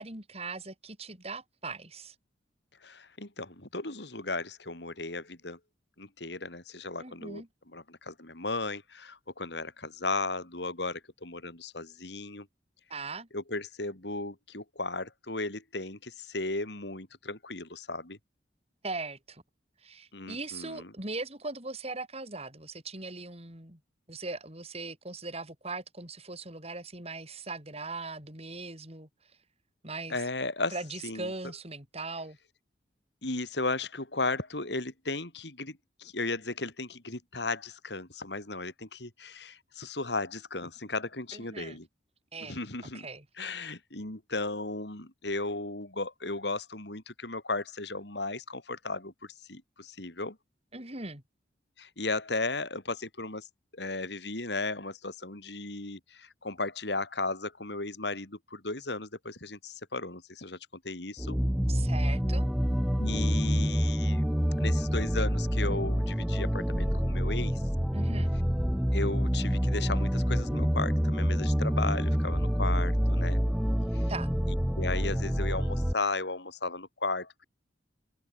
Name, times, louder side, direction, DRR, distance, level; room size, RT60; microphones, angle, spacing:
voice 1, 0.0-2.2 7.0-7.5 12.9-13.3 18.8-19.4 19.8-23.8 24.1-29.1 29.8-30.2 30.7-32.4 41.3-41.8 42.3-42.6 42.9-43.3 50.7-51.2 61.7-62.5 67.9-68.3 74.1-74.3, right 3 dB, 35° right, 7.0 m, -39 dB
voice 2, 2.8-5.6 6.0-7.4 7.7-12.5 13.3-18.2 20.1-20.9 30.1-30.7 31.0-31.3 33.2-41.9 42.5-43.1 43.4-50.4 51.8-53.5 53.7-60.6 60.8-61.4 63.0-64.2 64.6-67.6 68.9-73.4 73.9-74.0 74.5-77.5, left 3 dB, 70° left, 3.9 m, -35 dB
sound 1, 61.2-75.9, equal, ahead, 0.5 m, -27 dB
open air
head